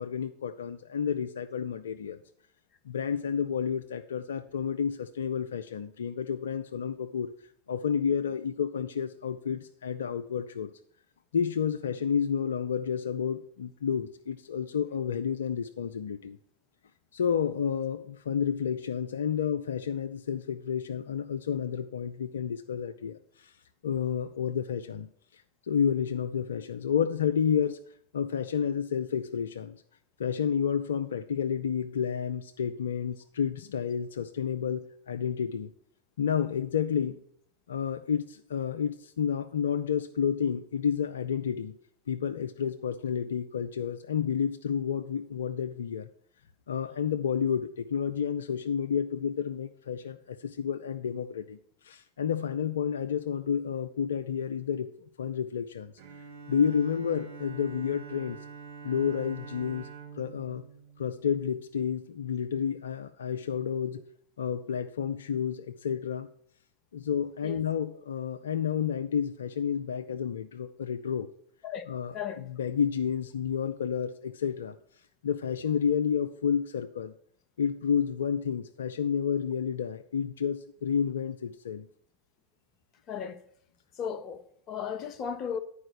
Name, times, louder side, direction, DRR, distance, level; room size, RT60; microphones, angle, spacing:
voice 1, 0.0-2.2 2.9-7.3 7.7-10.7 11.3-16.4 17.1-23.5 23.8-25.4 25.7-27.8 28.1-29.8 30.2-35.7 36.2-37.2 37.7-41.8 42.1-46.1 46.7-51.6 51.8-55.9 56.5-58.4 58.8-59.9 60.2-60.6 61.0-64.0 64.4-66.3 66.9-71.3 71.9-74.8 75.2-77.1 77.6-81.9, left 7 dB, 65° left, 0.4 m, -30 dB
Bowed string instrument, 56.0-61.9, right 6 dB, 60° right, 2.1 m, -46 dB
voice 2, 83.1-83.4 84.0-85.6, left 7 dB, 30° left, 0.7 m, -35 dB
9.7 x 4.9 x 6.5 m
figure-of-eight pair, 90°, 0 cm